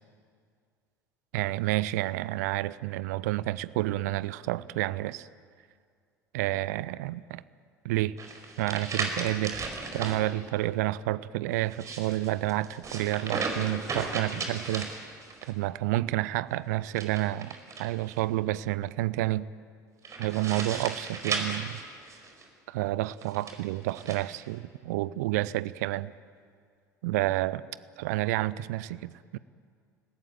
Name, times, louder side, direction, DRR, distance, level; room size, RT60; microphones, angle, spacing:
voice 1, 1.3-5.3 6.3-7.4 7.8-8.2 8.6-9.7 9.9-14.9 15.4-19.5 20.2-21.8 22.7-26.1 27.0-27.6 28.0-29.4, right 16 dB, 60° right, 0.7 m, -30 dB
sound 1, 8.2-10.2 11.6-15.5 16.9-18.2 20.0-22.5 23.2-24.2, right 4 dB, 30° right, 4.9 m, -35 dB
30.0 x 19.5 x 9.3 m
figure-of-eight pair, 65°, 10 cm